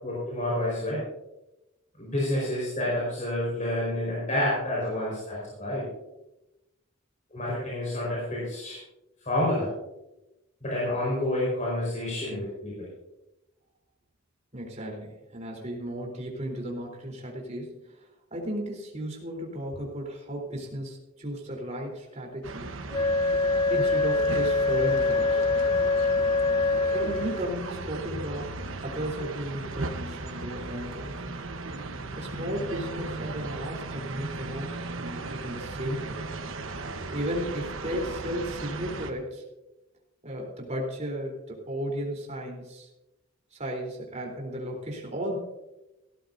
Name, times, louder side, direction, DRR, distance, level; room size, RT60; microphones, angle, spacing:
voice 1, 0.0-1.0 2.0-5.9 7.3-8.8 9.2-9.7 10.6-12.9, left 1 dB, 40° left, -6 dB, 4.9 m, -29 dB
voice 2, 14.5-22.8 23.7-25.4 26.7-31.3 32.2-36.2 37.1-39.4 40.2-42.9 43.5-45.4, equal, 35° right, 0 dB, 3.8 m, -35 dB
sound 1, 22.4-39.1, right 3 dB, 85° right, 1.1 m, -36 dB
Wind instrument woodwind instrument, 22.9-27.6, left 3 dB, 20° left, 0.3 m, -24 dB
17.0 x 13.5 x 2.7 m, 0.97 s
head